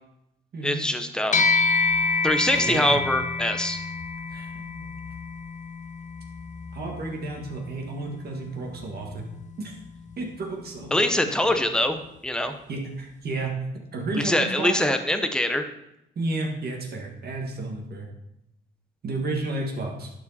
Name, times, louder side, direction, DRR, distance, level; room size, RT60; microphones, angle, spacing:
voice 1, 0.6-1.4 2.2-3.8 10.9-12.5 14.1-15.6, left 1 dB, 5° left, 7 dB, 0.8 m, -24 dB
sound 1, 1.3-10.9, left 4 dB, 40° left, 0.7 m, -29 dB
voice 2, 2.5-3.0 4.3-4.9 6.7-9.2 9.6-9.8 10.2-11.1 12.7-13.5 13.9-14.7 16.2-18.1 19.0-20.1, right 2 dB, 50° right, 0 dB, 1.9 m, -32 dB
11.0 x 4.8 x 4.2 m, 0.84 s
cardioid pair, 90°, 20 cm